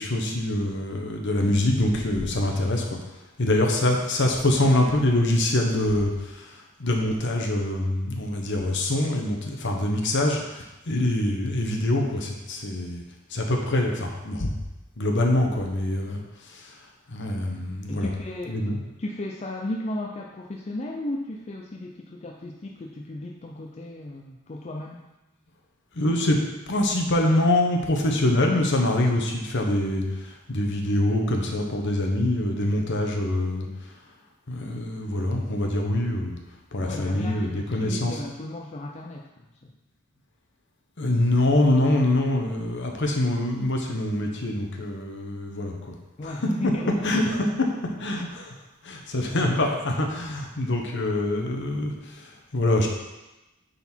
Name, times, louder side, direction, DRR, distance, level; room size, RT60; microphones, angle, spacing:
voice 1, 0.0-3.0 3.4-13.0 13.3-14.5 15.0-16.8 17.1-18.1 18.5-18.8 25.9-26.4 26.7-33.7 34.5-36.4 36.7-38.2 41.0-46.0 46.2-47.7 48.0-48.5 48.8-52.9, left 1 dB, 55° left, 2 dB, 1.1 m, -25 dB
voice 2, 17.9-18.6 19.0-25.0 36.8-39.3 39.6-39.7 46.2-47.3, left 1 dB, 30° left, 0 dB, 0.5 m, -35 dB
9.1 x 4.1 x 4.5 m, 1.0 s
head